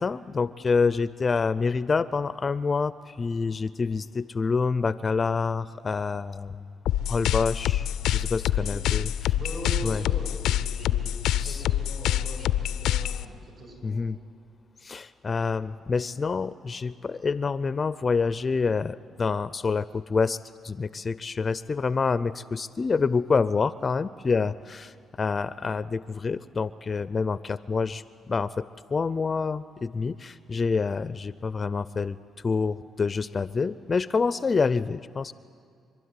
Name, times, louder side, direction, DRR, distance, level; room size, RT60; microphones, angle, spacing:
voice 1, 0.0-6.6 7.1-9.4 9.8-10.0 11.4-11.6 13.8-14.2 14.8-28.6 28.9-32.2 32.4-35.3, left 4 dB, 35° left, 15 dB, 0.4 m, -27 dB
sound 1, 6.9-13.2, left 11 dB, 85° left, 0.4 m, -26 dB
voice 2, 8.4-8.8 9.3-14.0 15.4-15.6, right 2 dB, 45° right, 2 dB, 8.0 m, -41 dB
26.0 x 12.0 x 9.7 m, 2.2 s
cardioid pair, 90°, 0 cm